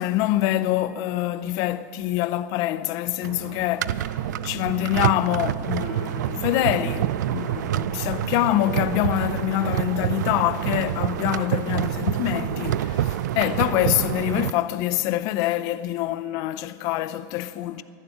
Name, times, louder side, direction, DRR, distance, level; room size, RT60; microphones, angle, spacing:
voice 1, 0.0-4.1 4.4-17.8, left 14 dB, 40° left, 0.5 m, -25 dB
sound 1, 3.2-14.5, right 12 dB, 90° right, 0.4 m, -27 dB
sound 2, 3.8-12.6, right 7 dB, 60° right, 1.1 m, -38 dB
11.5 x 11.0 x 9.2 m
supercardioid pair, 160°, 9 cm